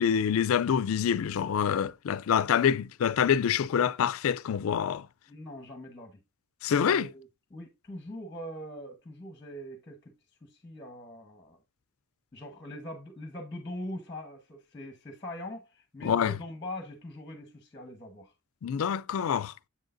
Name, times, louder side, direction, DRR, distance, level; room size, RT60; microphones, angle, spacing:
voice 1, 0.0-5.1 6.6-7.1 16.0-16.3 18.6-19.5, left 8 dB, 75° left, 0.4 m, -26 dB
voice 2, 5.3-6.2 6.7-10.1 10.4-11.6 12.3-18.3, left 1 dB, 20° left, 1.0 m, -42 dB
7.3 x 6.5 x 2.5 m
head